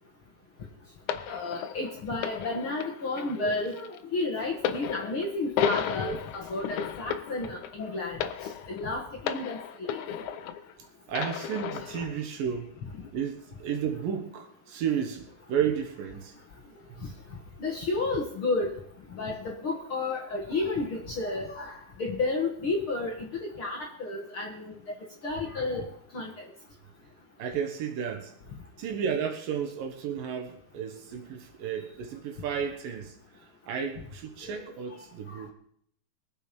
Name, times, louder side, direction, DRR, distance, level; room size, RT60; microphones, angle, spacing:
sound 1, 1.1-10.7 11.1-12.2 12.9-13.1, left 8 dB, 75° left, 1.8 m, -34 dB
voice 1, 1.3-8.2 8.7-10.0 17.6-18.7 19.1-24.7 25.2-25.8 26.1-26.4 35.3-35.4, left 3 dB, 45° left, 2.1 m, -32 dB
voice 2, 11.1-12.8 13.1-16.3 27.4-28.3 28.8-33.2 33.7-35.5, right 7 dB, 70° right, 3.0 m, -32 dB
22.5 x 7.9 x 5.4 m
omnidirectional pair, 4.4 m